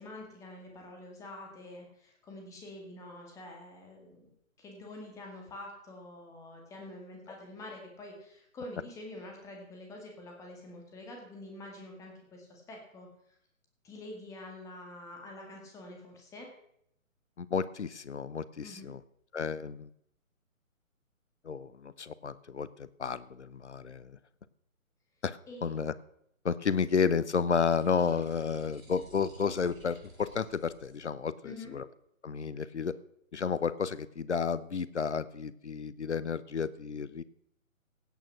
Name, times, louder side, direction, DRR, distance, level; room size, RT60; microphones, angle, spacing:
voice 1, 0.0-4.3 4.6-13.4 13.8-16.5 18.6-18.9 25.5-25.7 31.4-31.8, left 1 dB, 5° left, 1 dB, 2.0 m, -46 dB
voice 2, 17.4-19.0 19.3-19.9 21.4-24.2 25.2-25.9 26.4-31.8 32.2-32.9 33.3-37.2, left 6 dB, 55° left, 18 dB, 0.8 m, -32 dB
sound 1, 27.6-31.0, right 2 dB, 75° right, 4.6 m, -53 dB
16.5 x 8.8 x 5.9 m, 0.72 s
figure-of-eight pair, 140°, 41 cm